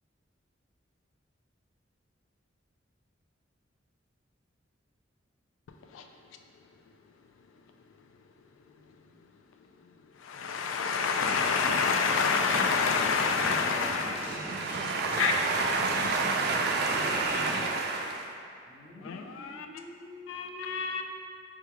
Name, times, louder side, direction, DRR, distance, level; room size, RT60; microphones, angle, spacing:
voice 1, 10.2-14.3 15.2-15.3 19.0-19.7 20.3-21.0, left 5 dB, 85° left, 5 dB, 0.3 m, -28 dB
sound 1, 11.1-17.7, equal, 10° right, 0.7 m, -37 dB
voice 2, 14.1-18.4, right 4 dB, 55° right, 2 dB, 0.4 m, -30 dB
voice 3, 18.6-21.0, left 1 dB, 20° left, -8 dB, 0.8 m, -47 dB
4.8 x 2.3 x 3.0 m, 2.4 s
head